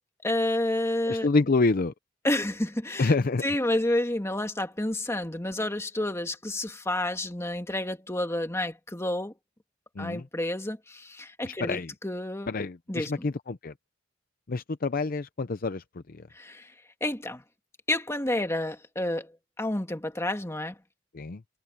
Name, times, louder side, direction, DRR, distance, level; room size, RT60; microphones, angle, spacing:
voice 1, 0.2-1.3 2.2-3.1 3.4-9.3 10.0-12.5 12.9-13.1 16.3-16.7 17.0-17.4 17.9-19.3 19.6-20.8, left 1 dB, 15° left, 1.9 m, -29 dB
voice 2, 1.1-1.9 3.0-3.4 10.0-10.2 11.4-11.9 12.5-13.7 14.5-16.2 21.1-21.4, left 3 dB, 45° left, 0.6 m, -27 dB
head